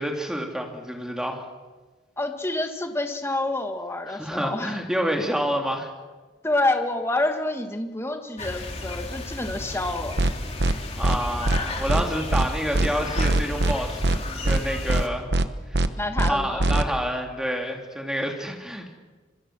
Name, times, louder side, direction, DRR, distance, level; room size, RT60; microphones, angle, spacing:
voice 1, 0.0-1.4 4.1-5.9 9.5-9.7 11.0-15.3 16.3-19.0, equal, 5° right, 2 dB, 3.1 m, -28 dB
voice 2, 2.2-4.8 6.4-10.3 16.0-16.7, left 2 dB, 15° left, 5 dB, 1.7 m, -27 dB
sound 1, 8.4-15.1, left 2 dB, 35° left, 2.6 m, -34 dB
sound 2, 10.2-10.3 10.6-10.7 11.0-11.2 11.5-11.6 11.9-12.0 12.3-12.5 12.7-12.9 13.2-13.7 14.0-14.2 14.5-14.6 14.9-15.0 15.3-15.5 15.7-15.9 16.2-16.3 16.6-16.8, right 2 dB, 60° right, 1.1 m, -21 dB
26.0 x 24.0 x 6.3 m, 1.3 s
head